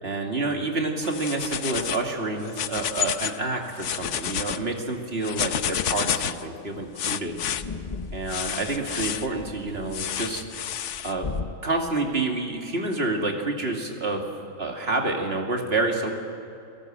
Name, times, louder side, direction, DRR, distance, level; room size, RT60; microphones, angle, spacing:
voice 1, 0.0-7.4 8.1-10.4 11.0-11.3 11.6-14.2 14.6-16.1, right 2 dB, 45° right, 2 dB, 2.7 m, -28 dB
sound 1, 1.0-2.1 2.4-3.4 3.7-4.6 5.2-6.4 7.0-7.6 8.3-9.3 9.9-11.1, left 9 dB, 65° left, 1.0 m, -30 dB
sound 2, 6.4-6.5 6.8-6.9 7.1-11.6, left 4 dB, 35° left, 0.9 m, -38 dB
29.5 x 18.0 x 7.7 m, 2.6 s
omnidirectional pair, 1.4 m